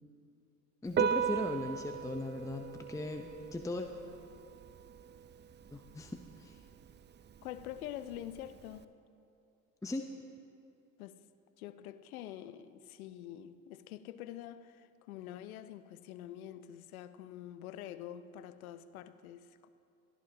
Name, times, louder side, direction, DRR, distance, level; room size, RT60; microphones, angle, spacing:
voice 1, 0.8-3.9 5.7-6.6 9.8-10.1, left 2 dB, 5° left, 0.8 m, -38 dB
Piano, 0.9-8.8, right 8 dB, 25° right, 0.6 m, -39 dB
voice 2, 7.4-8.9 11.0-11.2 11.6-19.7, left 12 dB, 80° left, 0.7 m, -46 dB
23.0 x 14.5 x 2.9 m
hypercardioid pair, 65°, 43 cm